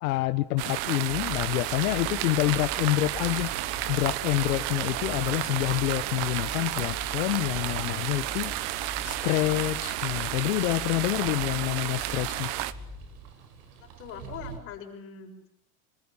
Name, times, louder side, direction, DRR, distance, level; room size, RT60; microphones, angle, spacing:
voice 1, 0.0-3.5 3.9-8.5 9.0-12.5, left 18 dB, 75° left, 11 dB, 1.3 m, -27 dB
sound 1, 0.6-12.7, right 16 dB, 45° right, 1.3 m, -32 dB
sound 2, 1.1-13.2, left 3 dB, 10° right, 3.5 m, -43 dB
sound 3, 4.3-14.6, right 6 dB, 85° right, 6.9 m, -51 dB
voice 2, 13.8-15.5, left 7 dB, 30° left, 3 dB, 6.8 m, -42 dB
26.5 x 25.0 x 7.4 m, 0.71 s
supercardioid pair, 175°, 43 cm